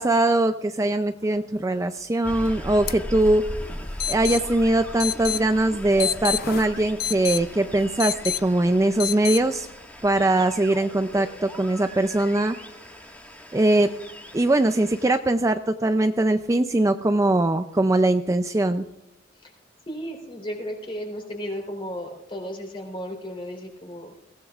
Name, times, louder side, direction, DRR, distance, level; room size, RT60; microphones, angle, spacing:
voice 1, 0.0-3.4 4.1-9.7 10.0-12.6 13.5-13.9 14.3-18.9, right 2 dB, 15° right, 8 dB, 0.4 m, -21 dB
sound 1, 2.2-15.2, equal, 10° left, 1.7 m, -39 dB
sound 2, 2.9-3.0 3.2-3.3 4.0-4.4 5.0-5.4 6.0-7.4 8.0-8.4 9.0-9.4, left 10 dB, 50° left, 0.5 m, -27 dB
voice 2, 19.9-24.1, equal, 25° left, 2 dB, 3.7 m, -34 dB
22.0 x 16.0 x 2.4 m, 0.87 s
head